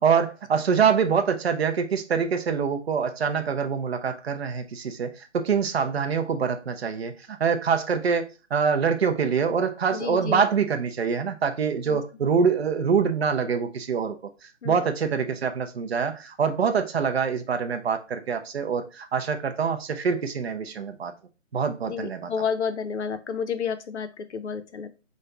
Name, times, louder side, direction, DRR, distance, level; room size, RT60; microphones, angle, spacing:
voice 1, 0.0-14.3 14.6-21.1 21.5-22.3, right 6 dB, 55° right, 0.7 m, -25 dB
voice 2, 9.9-10.4 11.9-12.0 14.6-14.8 21.9-24.9, left 6 dB, 65° left, 0.7 m, -30 dB
5.2 x 2.3 x 3.9 m
hypercardioid pair, 170°, 37 cm